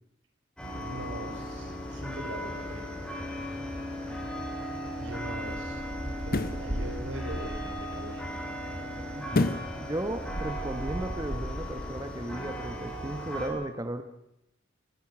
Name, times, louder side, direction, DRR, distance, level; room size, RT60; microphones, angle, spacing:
sound 1, 0.6-13.5, equal, 5° left, 7.1 m, -37 dB
voice 1, 0.8-2.9 4.8-5.8 6.2-8.3, right 1 dB, 90° right, 5 dB, 5.2 m, -41 dB
sound 2, 4.3-4.5 6.2-6.7 9.3-9.8 10.2-10.3, left 2 dB, 50° left, 0.9 m, -28 dB
sound 3, 5.5-8.0 9.0-9.1 9.4-12.0, equal, 60° right, 3.1 m, -38 dB
voice 2, 9.1-14.0, right 1 dB, 20° right, 9 dB, 1.3 m, -35 dB
26.5 x 18.5 x 6.2 m, 0.82 s
head